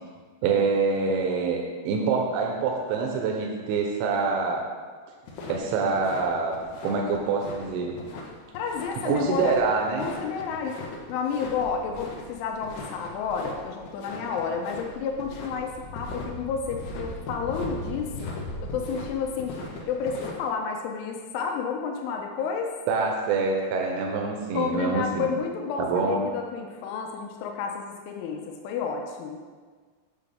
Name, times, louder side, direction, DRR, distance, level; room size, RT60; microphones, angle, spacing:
voice 1, 0.4-4.6 5.5-6.5 6.8-8.0 9.0-10.1 22.9-25.3 25.8-26.3, right 4 dB, 85° right, 1 dB, 3.1 m, -25 dB
sound 1, 5.3-20.3, left 2 dB, 70° left, 2.3 m, -39 dB
voice 2, 8.5-9.6 10.0-10.8 11.1-18.3 18.6-19.5 19.9-22.7 24.5-29.4, left 6 dB, 85° left, 2 dB, 3.2 m, -31 dB
8.8 x 6.9 x 3.5 m, 1.5 s
omnidirectional pair, 5.4 m